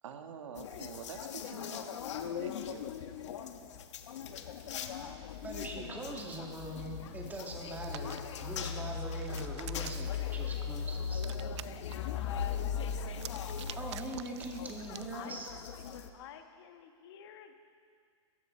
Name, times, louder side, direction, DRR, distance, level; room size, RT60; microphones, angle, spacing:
voice 1, 0.0-1.8 2.4-2.9, right 6 dB, 85° right, 6 dB, 1.4 m, -46 dB
sound 1, 0.5-16.1, left 7 dB, 75° left, 1.1 m, -39 dB
voice 2, 5.4-11.2 13.8-15.5, right 2 dB, 10° right, 0 dB, 1.9 m, -42 dB
Hands, 7.7-8.2 8.9-10.2 11.1-11.9 13.1-15.1, right 12 dB, 70° right, 0.5 m, -47 dB
voice 3, 15.1-15.6 16.1-17.5, left 9 dB, 55° left, 6 dB, 1.3 m, -50 dB
17.0 x 14.0 x 4.4 m, 2.1 s
hypercardioid pair, 145°, 15 cm